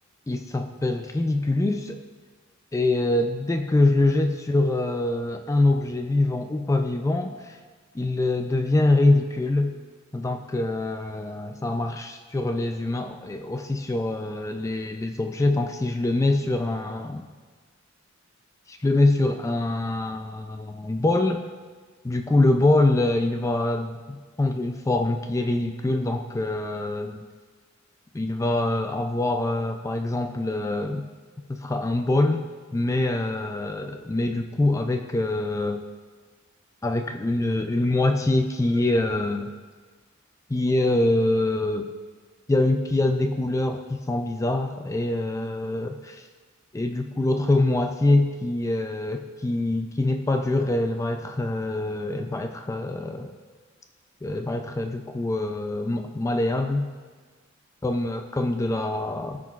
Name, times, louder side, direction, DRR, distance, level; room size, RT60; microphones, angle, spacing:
voice 1, 0.3-2.0 2.7-7.6 7.9-9.7 10.1-17.2 18.7-21.4 22.0-27.2 28.1-31.0 31.5-32.5 32.7-35.8 36.8-39.5 40.5-41.9 42.5-46.3 46.7-53.4 54.2-56.9 57.8-59.4, left 2 dB, 15° left, 6 dB, 0.3 m, -24 dB
16.5 x 6.0 x 2.4 m, 1.5 s
head